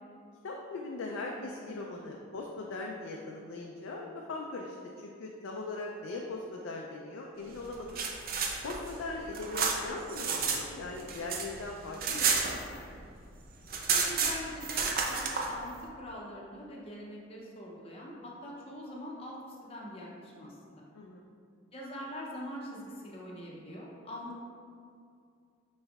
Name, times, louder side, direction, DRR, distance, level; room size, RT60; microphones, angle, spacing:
voice 1, 0.4-8.0 8.6-12.3 20.9-21.2, left 2 dB, 85° left, 0 dB, 0.4 m, -40 dB
sound 1, 7.7-10.6 10.9-13.1 13.3-13.4 13.7-15.5, right 5 dB, 50° right, 0.5 m, -31 dB
voice 2, 13.9-20.9 21.7-24.4, equal, 30° left, -4 dB, 0.6 m, -43 dB
5.2 x 4.2 x 2.3 m, 2.4 s
head